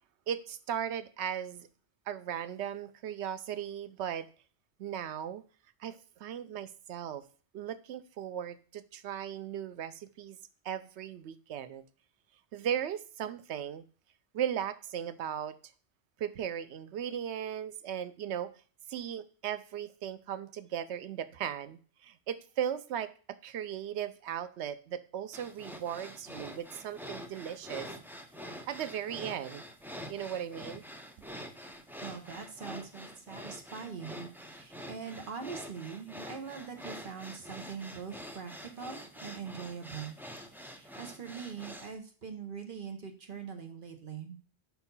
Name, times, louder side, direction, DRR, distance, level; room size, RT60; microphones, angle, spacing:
voice 1, 0.3-1.7 2.1-4.3 4.8-5.4 5.8-7.2 7.5-10.4 10.6-11.8 12.5-13.8 14.3-15.6 16.2-18.5 18.9-23.1 23.4-27.9 28.7-29.6 30.1-30.8, right 9 dB, 85° right, 0.9 m, -37 dB
sound 1, 25.3-41.9, equal, 5° right, 0.4 m, -46 dB
voice 2, 32.0-40.2 40.5-44.4, right 6 dB, 55° right, 1.2 m, -43 dB
5.3 x 4.6 x 5.4 m
omnidirectional pair, 1.1 m